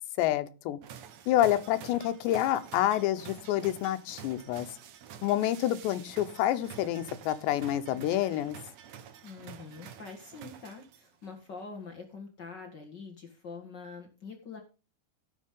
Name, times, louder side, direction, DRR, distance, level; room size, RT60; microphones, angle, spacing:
voice 1, 0.2-0.8 1.3-4.7 5.2-8.6, left 13 dB, 90° left, 10 dB, 3.2 m, -28 dB
sound 1, 0.8-11.2, right 8 dB, 85° right, 1.5 m, -49 dB
voice 2, 9.2-14.6, left 4 dB, 70° left, 3 dB, 1.0 m, -45 dB
17.0 x 7.2 x 3.7 m, 0.32 s
omnidirectional pair, 4.9 m